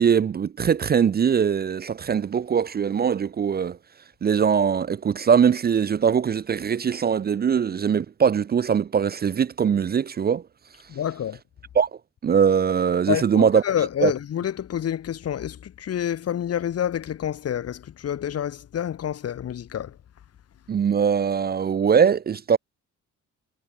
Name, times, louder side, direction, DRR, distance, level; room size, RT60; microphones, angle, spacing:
voice 1, 0.0-3.8 4.2-10.4 11.8-11.9 12.2-13.6 14.0-14.1 20.7-22.6, right 7 dB, 30° right, 0.5 m, -21 dB
voice 2, 10.9-11.4 13.1-20.0, left 10 dB, 55° left, 1.2 m, -28 dB
cardioid pair, 90°, 30 cm